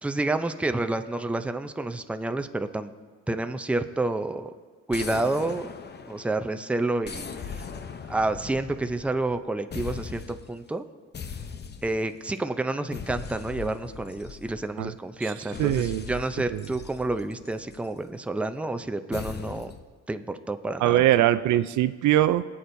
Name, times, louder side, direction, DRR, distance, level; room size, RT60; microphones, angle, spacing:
voice 1, 0.0-2.9 3.3-4.5 4.9-5.7 6.1-7.7 8.1-10.9 11.8-19.7 20.1-21.0, right 2 dB, 5° right, 9 dB, 0.5 m, -29 dB
sound 1, 4.9-6.5 7.0-9.4 9.7-10.5 11.1-12.2 12.9-14.8 15.5-17.9 19.1-19.9, left 6 dB, 35° left, 0.7 m, -39 dB
voice 2, 15.6-16.1 16.5-16.7 20.8-22.4, right 13 dB, 75° right, 13 dB, 0.4 m, -22 dB
22.0 x 8.6 x 2.6 m, 1.5 s
cardioid pair, 90°, 30 cm